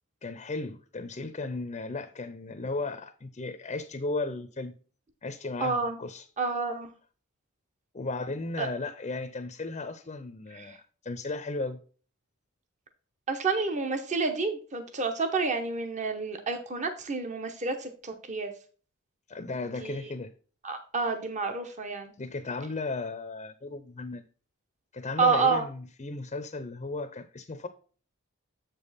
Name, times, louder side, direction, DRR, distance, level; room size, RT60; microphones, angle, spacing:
voice 1, 0.2-4.7 5.2-6.3 7.9-11.8 19.3-20.3 22.2-24.2 24.9-27.7, left 3 dB, 30° left, 0.6 m, -35 dB
voice 2, 5.6-6.0 6.4-6.9 8.6-8.7 10.6-10.8 13.3-18.5 19.8-20.0 20.6-22.1 25.2-25.7, right 4 dB, 35° right, 0.9 m, -29 dB
7.5 x 5.3 x 4.1 m
head